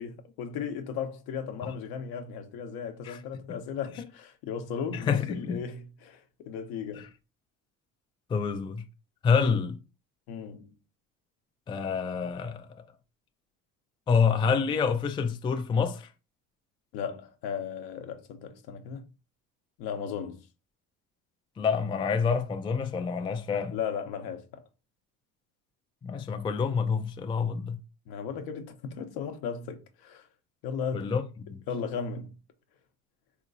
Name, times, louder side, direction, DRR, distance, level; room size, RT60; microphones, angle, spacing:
voice 1, 0.0-7.1 10.3-10.7 16.9-19.0 19.8-20.4 23.7-24.6 28.1-30.3 30.6-31.1 31.7-32.3, left 7 dB, 70° left, 0.8 m, -36 dB
voice 2, 4.9-5.6 7.0-7.1 8.3-8.8 9.2-9.8 11.7-12.7 14.1-16.1 21.6-23.8 26.0-27.8 30.9-31.6, left 5 dB, 15° left, 0.3 m, -27 dB
3.8 x 2.9 x 2.6 m
supercardioid pair, 80°, 39 cm